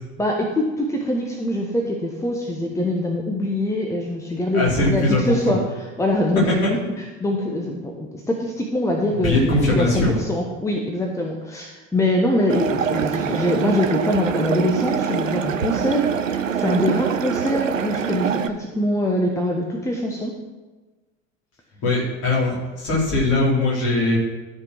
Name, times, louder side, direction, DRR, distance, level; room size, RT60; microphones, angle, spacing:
voice 1, 0.2-6.6 7.2-20.3, left 1 dB, 10° left, 1 dB, 1.2 m, -23 dB
voice 2, 4.5-5.6 6.5-6.7 9.2-10.1 21.8-24.2, left 2 dB, 40° left, -4 dB, 4.2 m, -20 dB
sound 1, 12.5-18.5, right 7 dB, 80° right, 0.7 m, -24 dB
13.0 x 5.3 x 6.2 m, 1.2 s
figure-of-eight pair, 70°, 38 cm